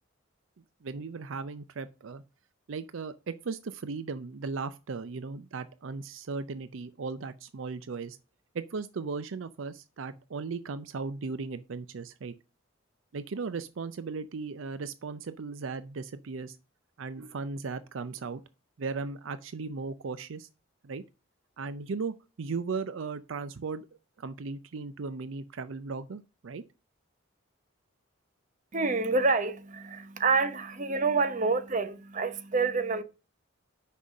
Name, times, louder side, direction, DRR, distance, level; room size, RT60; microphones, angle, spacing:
voice 1, 0.8-2.2 2.7-8.2 8.5-12.3 13.1-16.6 17.0-18.4 18.8-20.5 20.8-21.0 21.6-23.9 24.2-26.6, right 4 dB, 75° right, 0.5 m, -37 dB
voice 2, 28.7-33.0, right 4 dB, 40° right, 0.9 m, -27 dB
6.2 x 5.5 x 6.5 m
head